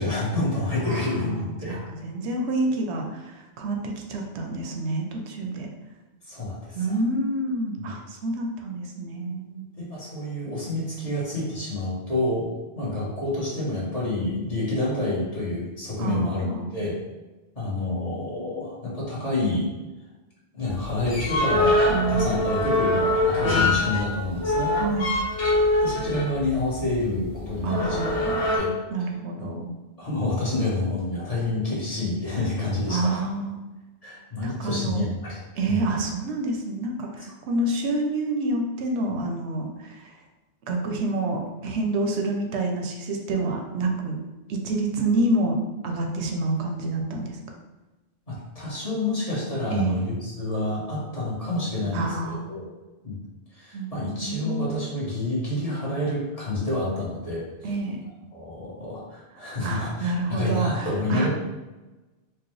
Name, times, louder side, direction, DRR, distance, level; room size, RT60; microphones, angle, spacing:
voice 1, 0.0-1.8 6.3-6.8 7.8-7.9 9.8-12.5 12.7-16.5 16.7-17.0 17.5-19.7 20.5-24.7 25.8-28.7 29.4-29.5 30.0-33.2 34.0-35.4 35.7-35.8 48.3-52.7 53.0-53.2 53.5-57.7 58.3-61.3, left 2 dB, 35° left, -7 dB, 1.1 m, -28 dB
voice 2, 0.8-5.7 6.7-9.7 16.0-16.7 21.9-22.6 24.8-25.2 27.6-28.4 28.9-29.7 32.9-33.6 34.4-35.0 35.6-40.1 40.7-44.2 44.5-45.6 45.8-47.4 49.7-50.0 51.9-52.5 53.7-54.8 57.6-58.0 59.6-61.3, right 2 dB, 80° right, 3 dB, 0.9 m, -28 dB
sound 1, 20.7-28.6, left 2 dB, 75° left, 1.3 m, -24 dB
4.6 x 2.1 x 3.1 m, 1.1 s
omnidirectional pair, 1.1 m